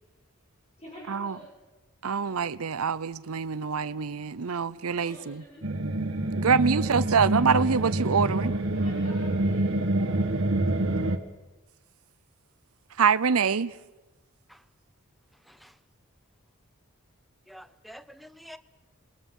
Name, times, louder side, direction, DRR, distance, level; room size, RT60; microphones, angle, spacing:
voice 1, 0.8-1.5 4.9-5.7 6.7-7.2 8.2-10.2, equal, 30° left, 5.8 m, -48 dB
voice 2, 2.0-5.4 6.4-8.5 13.0-13.7, right 6 dB, 85° right, 0.7 m, -25 dB
sound 1, 5.6-11.2, right 1 dB, 60° right, 1.5 m, -27 dB
voice 3, 17.5-18.6, equal, ahead, 0.6 m, -48 dB
27.5 x 21.5 x 5.5 m
head